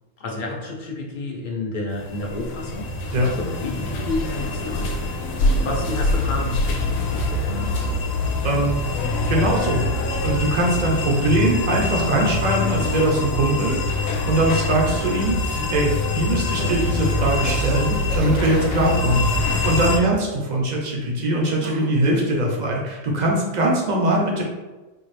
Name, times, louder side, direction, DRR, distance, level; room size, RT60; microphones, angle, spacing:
voice 1, 0.2-4.9 5.5-7.9, left 2 dB, 45° left, -1 dB, 0.8 m, -30 dB
sound 1, 1.9-20.0, left 2 dB, 85° left, 1.0 m, -24 dB
voice 2, 8.4-8.8 9.3-9.9 10.2-15.4 15.7-19.3 19.6-24.4, right 1 dB, 40° right, -1 dB, 0.7 m, -21 dB
Cough, 17.5-17.8 18.1-19.1 19.8-20.5 21.6-22.0, right 4 dB, 85° right, 1.0 m, -34 dB
4.4 x 2.4 x 3.2 m, 1.2 s
omnidirectional pair, 1.4 m